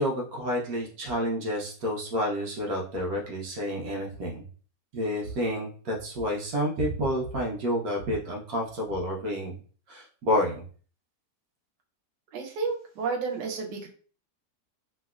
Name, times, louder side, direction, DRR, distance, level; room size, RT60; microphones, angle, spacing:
voice 1, 0.0-4.5 4.9-9.6 9.9-10.6, equal, 60° right, -1 dB, 1.2 m, -29 dB
voice 2, 12.3-13.9, right 5 dB, 90° right, 2 dB, 1.3 m, -31 dB
3.2 x 2.9 x 2.3 m, 0.42 s
omnidirectional pair, 1.8 m